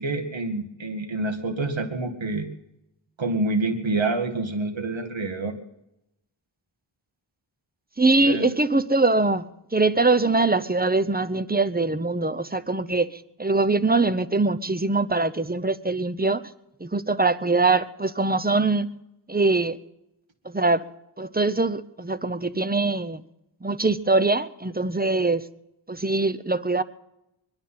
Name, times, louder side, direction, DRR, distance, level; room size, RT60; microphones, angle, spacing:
voice 1, 0.0-2.5 3.2-5.6 8.2-8.5, right 2 dB, 75° right, 2.1 m, -27 dB
voice 2, 8.0-16.4 16.8-18.9 19.3-19.8 20.4-20.8 21.2-23.2 23.6-25.5 25.9-26.8, right 3 dB, 20° right, 0.7 m, -23 dB
21.5 x 11.5 x 5.7 m
wide cardioid pair, 60°, 46 cm